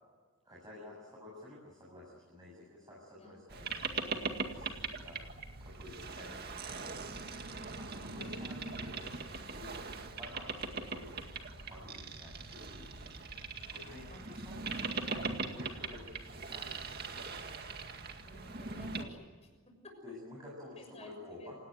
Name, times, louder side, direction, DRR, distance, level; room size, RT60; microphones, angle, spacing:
voice 1, 0.4-4.1 4.5-5.2 5.6-16.0 16.3-16.9 20.0-21.6, left 1 dB, 15° right, -4 dB, 7.3 m, -52 dB
Boat Water vehicle, 3.5-19.1, right 4 dB, 45° right, 2.1 m, -41 dB
voice 2, 8.1-8.5 14.1-14.6 18.2-20.0 20.8-21.5, left 1 dB, 30° left, 4 dB, 6.4 m, -55 dB
28.0 x 18.5 x 9.4 m, 1.5 s
head